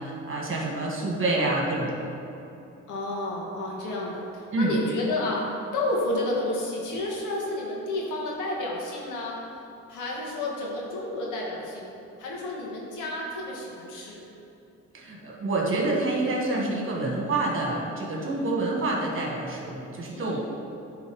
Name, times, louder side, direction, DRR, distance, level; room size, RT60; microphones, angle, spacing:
voice 1, 0.0-2.1 4.5-4.7 14.9-20.4, right 2 dB, 45° right, -2 dB, 1.8 m, -27 dB
voice 2, 2.9-9.4 9.9-11.9 12.2-14.2 18.2-18.4 20.1-20.4, left 1 dB, 85° left, -3 dB, 1.8 m, -31 dB
9.5 x 3.9 x 5.3 m, 2.9 s
cardioid pair, 90°, 30 cm